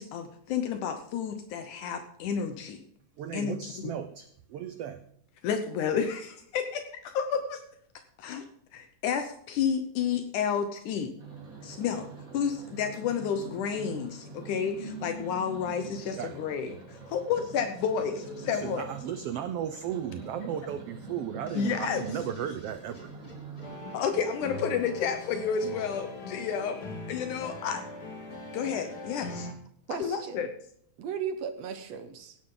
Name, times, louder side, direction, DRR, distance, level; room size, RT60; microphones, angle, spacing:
voice 1, 0.0-2.8 3.3-3.9 5.4-7.6 8.2-8.4 8.7-11.1 11.6-12.1 12.3-18.9 21.5-22.0 23.9-26.8 27.1-27.8 28.5-29.5 30.0-30.5, left 7 dB, 75° left, 7 dB, 2.4 m, -31 dB
voice 2, 3.2-5.0 16.2-16.4 18.5-23.1, right 9 dB, 80° right, 10 dB, 1.3 m, -35 dB
sound 1, 11.2-23.8, right 3 dB, 25° right, 3.9 m, -44 dB
sound 2, 21.5-25.2, left 1 dB, 20° left, 1.2 m, -51 dB
sound 3, 23.6-29.5, left 2 dB, 35° left, 2.1 m, -41 dB
voice 3, 29.9-30.5 31.0-32.4, right 7 dB, 65° right, 9 dB, 2.0 m, -36 dB
16.5 x 10.5 x 3.9 m, 0.68 s
omnidirectional pair, 3.6 m